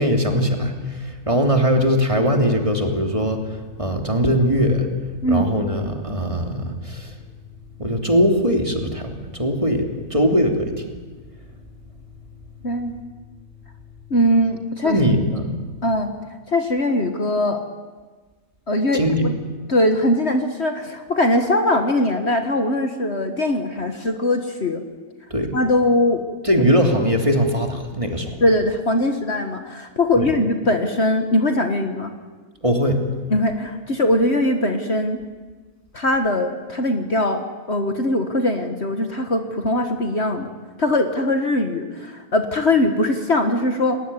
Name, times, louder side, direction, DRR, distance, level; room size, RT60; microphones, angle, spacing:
voice 1, 0.0-4.9 5.3-7.1 7.8-10.8 14.8-15.5 18.9-19.3 25.3-25.5 26.4-28.4 30.1-30.3 32.6-33.0, equal, 20° right, 3 dB, 3.0 m, -20 dB
Organ, 4.4-14.7, left 11 dB, 5° left, 6.3 m, -47 dB
voice 2, 12.6-13.0 14.1-15.0 15.8-16.1 16.5-17.6 18.7-19.3 19.7-24.8 25.5-26.2 28.4-32.1 33.3-35.2 35.9-40.5 40.8-44.0, left 1 dB, 45° left, 6 dB, 1.9 m, -21 dB
29.5 x 20.0 x 9.9 m, 1.4 s
omnidirectional pair, 1.6 m